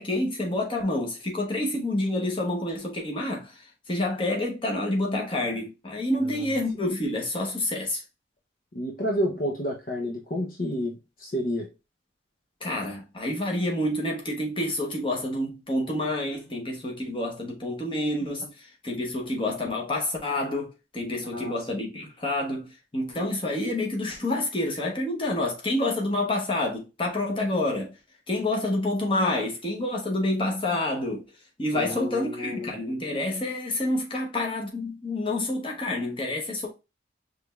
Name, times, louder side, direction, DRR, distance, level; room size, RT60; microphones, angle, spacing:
voice 1, 0.0-8.0 12.6-27.9 28.3-31.2 31.6-36.7, left 1 dB, 30° left, 1.1 m, -28 dB
voice 2, 6.2-6.5 8.7-11.7 21.3-21.5 31.7-32.7, equal, 50° left, 0.8 m, -30 dB
5.0 x 3.3 x 2.4 m
head